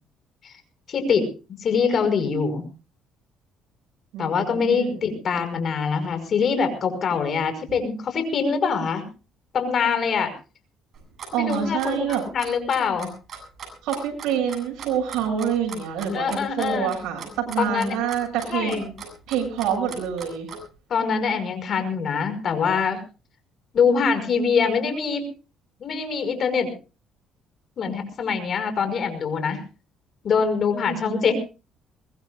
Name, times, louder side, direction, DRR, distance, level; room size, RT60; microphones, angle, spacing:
voice 1, 0.9-1.3 1.6-2.6 4.2-9.1 9.5-10.3 11.3-13.1 16.1-16.9 17.6-18.0 18.5-18.8 20.9-23.0 23.7-25.3 25.8-26.7 27.8-29.6 30.2-31.3, left 5 dB, 50° left, 8 dB, 5.4 m, -24 dB
voice 2, 4.1-5.0 11.3-12.2 13.8-18.9 19.3-20.5 30.8-31.3, right 7 dB, 80° right, 1 dB, 7.6 m, -27 dB
Clock, 10.9-20.6, right 6 dB, 50° right, 7.9 m, -38 dB
23.0 x 21.0 x 2.5 m, 0.34 s
cardioid pair, 110°, 0 cm